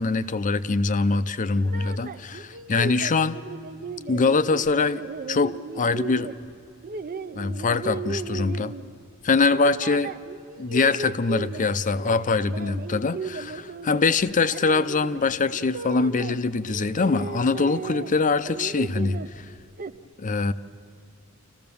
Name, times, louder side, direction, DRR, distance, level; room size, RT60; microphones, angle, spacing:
voice 1, 0.0-3.4 4.1-5.0 5.3-6.3 7.4-8.7 9.2-10.1 10.6-19.2 20.2-20.5, left 4 dB, 35° left, 13 dB, 0.5 m, -23 dB
sound 1, 1.5-9.1 9.5-11.7 12.0-16.4 16.7-18.1 18.4-20.0, right 4 dB, 40° right, 0.5 m, -36 dB
28.0 x 15.0 x 6.9 m, 2.3 s
head